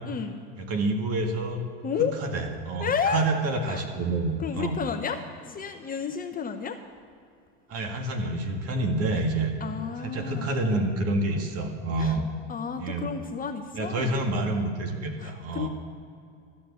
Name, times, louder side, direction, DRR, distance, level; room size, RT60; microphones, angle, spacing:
voice 1, 0.0-0.4 1.8-2.1 2.8-3.2 3.7-3.8 4.4-6.8 9.6-10.5 12.0-12.2 12.5-14.2 15.2-15.7, left 7 dB, 25° left, 6 dB, 0.7 m, -31 dB
voice 2, 0.6-1.7 2.2-4.9 7.7-9.5 10.0-12.2 12.8-13.1 13.7-15.7, right 2 dB, 40° right, 4 dB, 1.9 m, -28 dB
13.0 x 7.4 x 8.2 m, 2.3 s
supercardioid pair, 115°, 37 cm